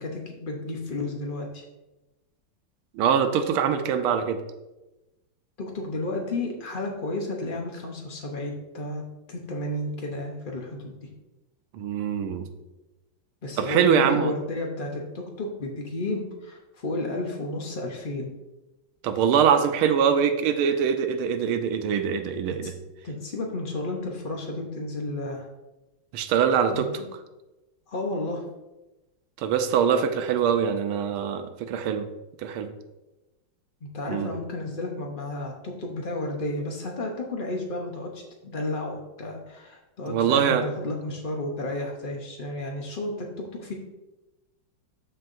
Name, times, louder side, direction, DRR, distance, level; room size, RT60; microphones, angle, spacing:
voice 1, 0.0-1.6 5.6-9.0 9.3-11.0 13.4-18.3 22.6-22.7 23.0-25.5 26.7-27.1 27.9-28.4 33.9-43.7, left 2 dB, 75° left, 0 dB, 0.4 m, -32 dB
voice 2, 2.9-4.4 11.7-12.5 13.6-14.3 19.0-22.7 26.1-26.9 29.4-32.1 32.4-32.7 34.1-34.3 40.1-40.6, right 7 dB, 90° right, 8 dB, 1.5 m, -23 dB
13.5 x 4.6 x 2.6 m, 1.0 s
omnidirectional pair, 2.3 m